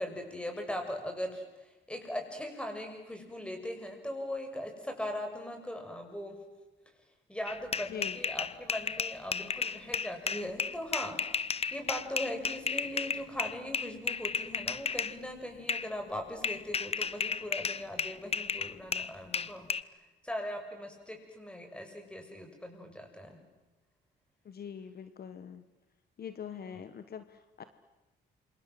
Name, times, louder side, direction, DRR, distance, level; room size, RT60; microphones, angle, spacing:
voice 1, 0.0-6.4 7.3-19.7 20.2-23.4 26.5-26.8, left 1 dB, 5° left, 4 dB, 7.4 m, -40 dB
sound 1, 7.5-15.2 15.7-15.9 16.4-19.8, left 5 dB, 30° left, 0.9 m, -33 dB
voice 2, 24.4-25.6 26.2-27.6, left 8 dB, 50° left, 11 dB, 1.4 m, -43 dB
28.0 x 26.0 x 7.9 m, 1.1 s
cardioid pair, 90°, 20 cm